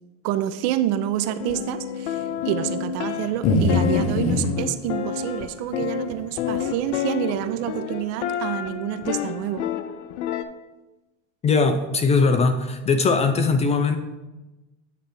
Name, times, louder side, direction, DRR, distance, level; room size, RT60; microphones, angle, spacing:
voice 1, 0.2-9.6, right 12 dB, 45° right, 11 dB, 0.4 m, -28 dB
sound 1, 1.2-10.4, left 9 dB, 70° left, 0.7 m, -30 dB
sound 2, 3.4-4.5 5.8-5.9 6.6-6.7, left 3 dB, 45° left, 1.0 m, -21 dB
voice 2, 11.4-14.0, left 4 dB, 20° left, 8 dB, 0.4 m, -20 dB
8.9 x 3.3 x 5.8 m, 1.1 s
supercardioid pair, 115°, 36 cm